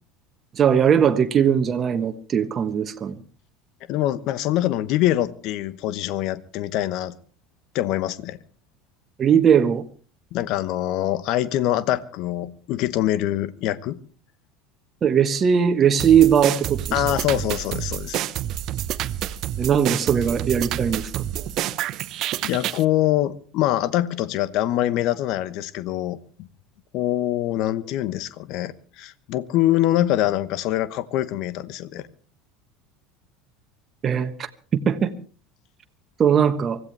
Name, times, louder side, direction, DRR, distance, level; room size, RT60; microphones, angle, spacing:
voice 1, 0.5-3.2 9.2-9.8 15.0-17.0 19.6-21.2 34.0-35.1 36.2-36.8, right 8 dB, 35° right, 1.3 m, -19 dB
voice 2, 3.9-7.2 7.7-8.4 10.3-14.0 16.9-18.2 22.4-26.5 26.9-32.1, left 13 dB, 55° left, 1.1 m, -24 dB
sound 1, 16.0-22.8, right 12 dB, 50° right, 0.9 m, -28 dB
24.5 x 15.5 x 3.4 m
figure-of-eight pair, 75°, 0 cm